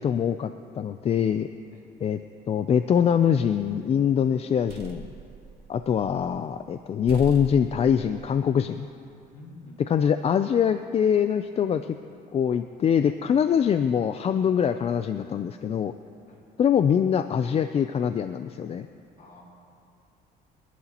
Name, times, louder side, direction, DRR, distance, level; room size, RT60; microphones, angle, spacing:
voice 1, 0.0-1.5 2.0-2.2 2.5-5.0 5.7-8.9 9.9-11.9 12.3-15.9 16.6-18.9, left 8 dB, 35° left, 10 dB, 0.4 m, -23 dB
sound 1, 3.3-3.8 4.3-6.4 6.7-6.8 7.1-8.6, right 5 dB, 75° right, 2.0 m, -42 dB
voice 2, 9.3-10.0 16.3-16.4 19.2-19.4, left 2 dB, 55° left, -2 dB, 4.0 m, -47 dB
29.0 x 11.5 x 3.0 m, 2.5 s
cardioid pair, 110°, 17 cm